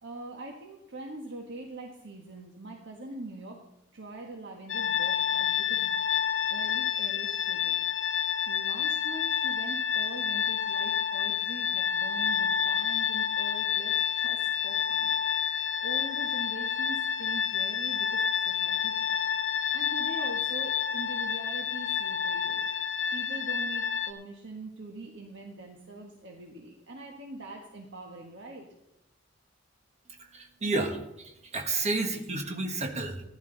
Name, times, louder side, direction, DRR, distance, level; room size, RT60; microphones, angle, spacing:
voice 1, 0.0-3.6 3.9-6.0 6.5-7.8 8.1-15.5 15.8-19.2 19.7-22.6 23.1-28.7, right 2 dB, 65° right, 1 dB, 1.5 m, -43 dB
sound 1, 4.7-24.1, left 8 dB, 70° left, 0.9 m, -29 dB
voice 2, 30.3-33.2, right 3 dB, 35° right, 4 dB, 1.5 m, -31 dB
15.0 x 10.5 x 4.0 m, 0.90 s
head